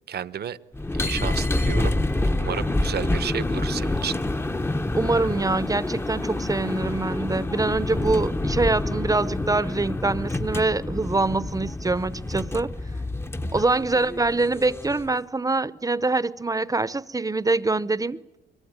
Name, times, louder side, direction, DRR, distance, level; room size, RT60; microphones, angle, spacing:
voice 1, 0.1-0.6 0.9-2.0 2.4-4.2, right 9 dB, 55° right, 1.0 m, -31 dB
sound 1, 0.7-15.2, left 2 dB, 10° left, 0.8 m, -27 dB
voice 2, 5.0-12.7 13.5-18.2, right 3 dB, 15° right, 0.8 m, -24 dB
23.5 x 22.5 x 9.7 m
cardioid pair, 90°, 20 cm